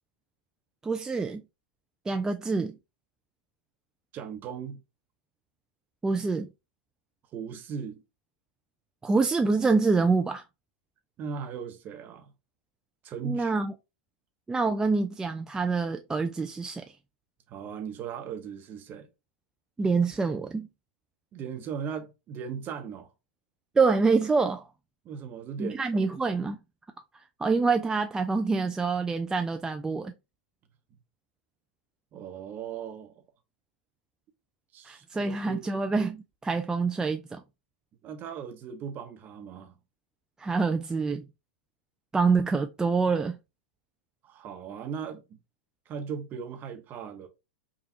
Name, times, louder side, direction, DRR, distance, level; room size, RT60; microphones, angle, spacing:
voice 1, 0.8-1.4 2.1-2.8 6.0-6.5 9.0-10.4 13.2-13.7 14.5-16.8 19.8-20.7 23.8-24.7 25.6-26.6 27.4-30.1 34.8-37.4 40.4-41.2 42.1-43.4, right 4 dB, 10° right, 0.3 m, -26 dB
voice 2, 4.1-4.8 7.3-8.0 11.2-12.3 13.0-13.6 17.5-19.1 21.3-23.1 25.0-26.1 32.1-33.1 34.7-35.7 38.0-39.7 44.2-45.4 45.9-47.3, right 7 dB, 35° right, 0.8 m, -38 dB
5.0 x 2.4 x 2.8 m
hypercardioid pair, 105°, 6 cm